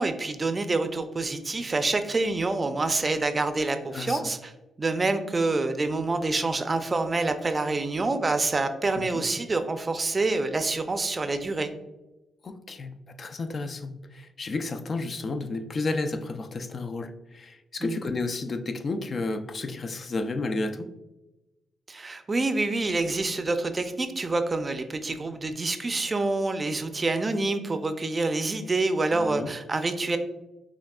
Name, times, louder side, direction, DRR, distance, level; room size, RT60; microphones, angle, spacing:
voice 1, 0.0-4.5 4.8-11.7 17.8-18.0 21.9-30.2, right 3 dB, 35° right, 8 dB, 0.4 m, -27 dB
voice 2, 3.9-4.3 9.0-9.2 12.4-20.9 29.1-29.5, left 3 dB, 50° left, 8 dB, 0.4 m, -32 dB
5.8 x 2.3 x 2.3 m, 1.0 s
supercardioid pair, 60°, 0 cm